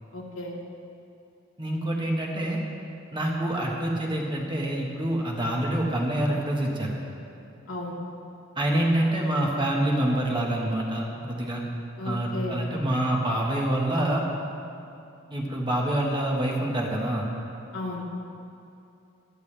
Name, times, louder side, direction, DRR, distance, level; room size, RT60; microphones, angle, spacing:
voice 1, 0.1-0.6 7.7-8.0 12.0-12.6 17.7-18.0, left 2 dB, 80° left, -2 dB, 2.2 m, -34 dB
voice 2, 1.6-2.6 3.1-6.9 8.5-11.6 12.0-14.2 15.3-17.3, right 1 dB, 25° right, -2 dB, 1.6 m, -26 dB
17.5 x 13.0 x 3.5 m, 2.6 s
head